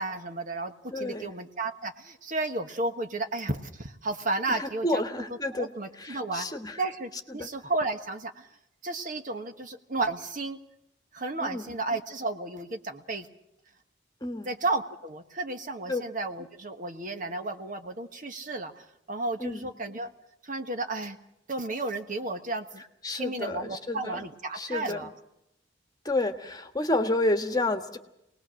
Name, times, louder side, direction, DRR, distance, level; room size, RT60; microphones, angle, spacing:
voice 1, 0.0-5.0 5.3-6.5 6.8-8.5 8.8-10.6 11.1-13.3 14.4-20.1 20.4-21.2 21.5-22.8 23.1-25.1, right 2 dB, 45° right, 6 dB, 1.4 m, -33 dB
voice 2, 0.9-1.3 4.5-5.7 6.0-6.8 7.3-7.5 11.4-11.7 14.2-14.5 15.9-16.0 19.4-19.7 23.0-24.2 24.5-25.0 26.0-28.0, left 2 dB, 20° left, 7 dB, 1.5 m, -30 dB
25.5 x 19.5 x 6.4 m, 0.83 s
head